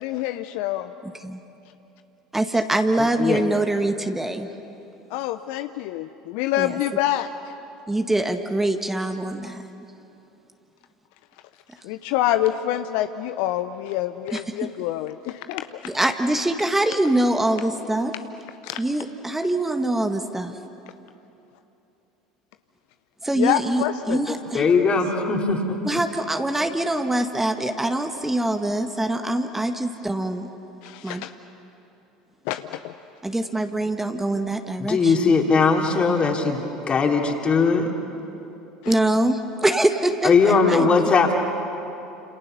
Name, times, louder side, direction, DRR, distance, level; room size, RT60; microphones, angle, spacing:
voice 1, 0.0-0.9 5.1-7.3 11.8-15.6 18.6-18.8 23.4-24.2 24.6-24.8 30.8-31.3 32.5-32.9 38.8-39.0, left 13 dB, 60° left, 10 dB, 0.7 m, -26 dB
voice 2, 1.0-1.4 2.3-4.5 6.6-6.8 7.9-9.6 14.3-14.7 15.9-18.1 18.8-20.5 23.2-24.6 25.8-30.5 31.0-31.2 33.2-35.3 38.8-40.9, right 1 dB, 10° right, 6 dB, 1.6 m, -24 dB
voice 3, 3.0-3.4 24.3-25.8 34.8-37.9 40.2-41.3, left 4 dB, 30° left, 2 dB, 3.5 m, -20 dB
30.0 x 27.5 x 6.9 m, 2.9 s
figure-of-eight pair, 70°, 3 cm